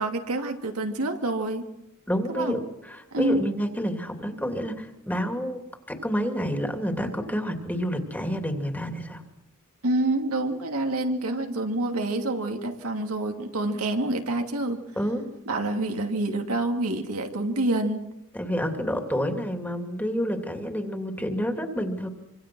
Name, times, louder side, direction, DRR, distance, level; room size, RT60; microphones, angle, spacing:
voice 1, 0.0-1.6 2.3-2.6 3.1-3.5 9.8-14.8 15.5-18.0, right 2 dB, 80° right, 3 dB, 2.6 m, -27 dB
voice 2, 2.1-5.6 5.9-9.2 15.0-15.2 18.3-22.1, equal, 10° left, 5 dB, 2.8 m, -29 dB
25.5 x 25.5 x 6.2 m, 0.85 s
head